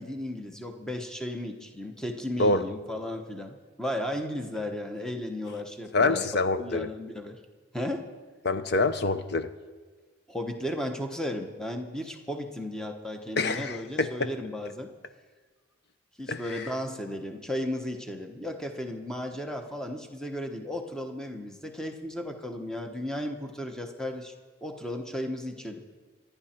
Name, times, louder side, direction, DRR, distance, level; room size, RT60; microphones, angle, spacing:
voice 1, 0.0-6.2 6.6-7.4 7.7-8.1 10.3-14.9 16.2-24.3 24.6-25.8, left 1 dB, 5° left, 4 dB, 1.0 m, -35 dB
voice 2, 5.9-6.9 8.4-9.5 13.4-14.3 16.3-16.7, left 3 dB, 55° left, 11 dB, 0.7 m, -26 dB
26.0 x 10.0 x 4.4 m, 1.4 s
head